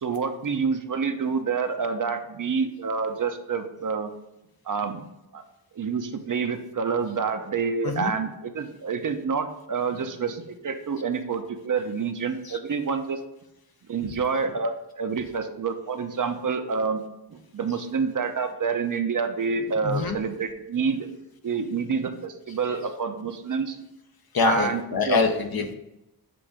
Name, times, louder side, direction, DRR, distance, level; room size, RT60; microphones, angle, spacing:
voice 1, 0.0-4.1 4.7-5.0 5.3-5.4 5.7-13.2 13.9-17.0 17.3-21.1 21.4-23.8 24.4-24.8 25.1-25.2, right 5 dB, 45° right, 7 dB, 0.6 m, -28 dB
voice 2, 19.8-20.2 24.3-25.7, left 4 dB, 55° left, 5 dB, 0.8 m, -25 dB
7.6 x 2.6 x 4.9 m, 0.90 s
cardioid pair, 70°, 43 cm